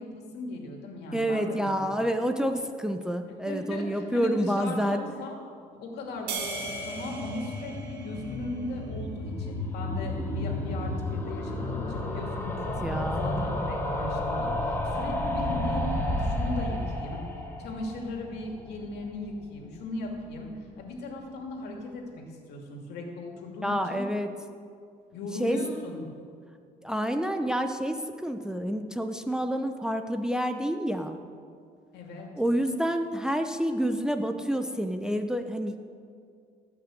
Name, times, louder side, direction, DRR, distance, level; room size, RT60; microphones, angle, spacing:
voice 1, 0.0-2.0 3.4-5.3 5.8-12.8 13.1-17.2 17.6-20.5 20.8-24.0 25.1-26.1 31.9-32.3, left 2 dB, 80° left, 1 dB, 2.6 m, -37 dB
voice 2, 1.1-5.0 12.8-13.2 23.6-24.3 25.4-25.6 26.8-31.2 32.4-35.9, equal, 5° right, 6 dB, 0.7 m, -28 dB
sound 1, 6.3-8.9, right 3 dB, 90° right, 1.7 m, -37 dB
sound 2, 6.4-19.4 19.7-19.8 20.0-20.1 20.3-20.4, left 1 dB, 15° left, 2.2 m, -32 dB
17.5 x 5.9 x 7.8 m, 2.3 s
cardioid pair, 110°, 17 cm